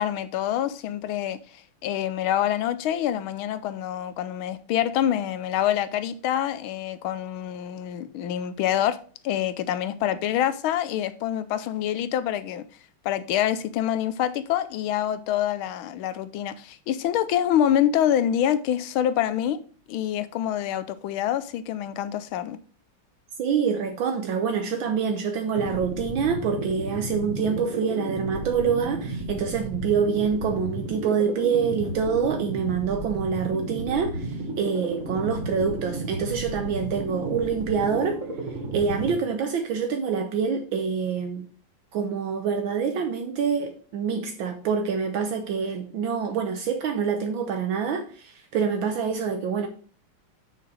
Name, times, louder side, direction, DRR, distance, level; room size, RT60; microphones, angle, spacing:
voice 1, 0.0-9.0 9.2-12.6 13.0-19.6 19.9-22.6, left 10 dB, 80° left, 1.4 m, -26 dB
voice 2, 23.4-38.2 38.5-41.5 41.9-49.7, right 6 dB, 70° right, 1.5 m, -26 dB
sound 1, 25.5-39.1, right 2 dB, 40° right, 1.7 m, -33 dB
6.5 x 5.9 x 4.8 m
omnidirectional pair, 2.4 m